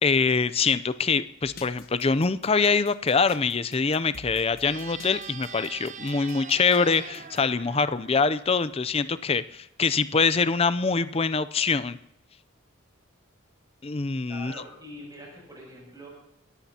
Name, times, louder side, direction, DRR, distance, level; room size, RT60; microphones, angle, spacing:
voice 1, 0.0-12.0 13.8-14.5, left 4 dB, 30° left, 14 dB, 0.5 m, -24 dB
sound 1, 1.4-7.4, left 4 dB, 45° left, 1.2 m, -48 dB
sound 2, 4.6-9.0, right 6 dB, 35° right, 0.7 m, -43 dB
voice 2, 14.3-16.1, equal, 20° right, -2 dB, 7.5 m, -43 dB
28.5 x 14.0 x 2.9 m, 0.78 s
head